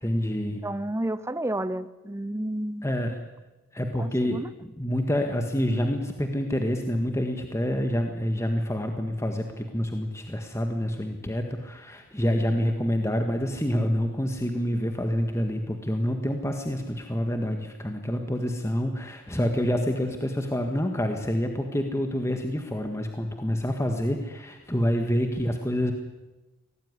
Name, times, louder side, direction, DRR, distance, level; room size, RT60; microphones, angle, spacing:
voice 1, 0.0-0.6 2.8-3.2 3.7-25.9, equal, 15° left, 5 dB, 1.8 m, -27 dB
voice 2, 0.6-2.9 4.0-4.5, right 1 dB, 10° right, 14 dB, 0.8 m, -31 dB
24.5 x 18.0 x 9.9 m, 1.1 s
head